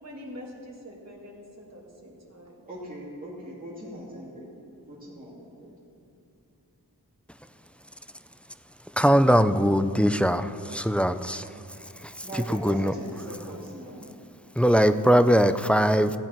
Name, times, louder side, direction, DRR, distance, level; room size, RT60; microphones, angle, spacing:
voice 1, 0.0-2.5, left 1 dB, 45° right, -2 dB, 2.1 m, -44 dB
voice 2, 2.6-4.5 4.8-5.7 12.2-14.1, right 1 dB, 25° right, -7 dB, 2.9 m, -40 dB
voice 3, 9.0-11.5 12.0-12.3 12.6-12.9 14.6-16.2, equal, 5° left, 10 dB, 0.4 m, -21 dB
16.5 x 8.9 x 4.5 m, 2.6 s
wide cardioid pair, 75°, 37 cm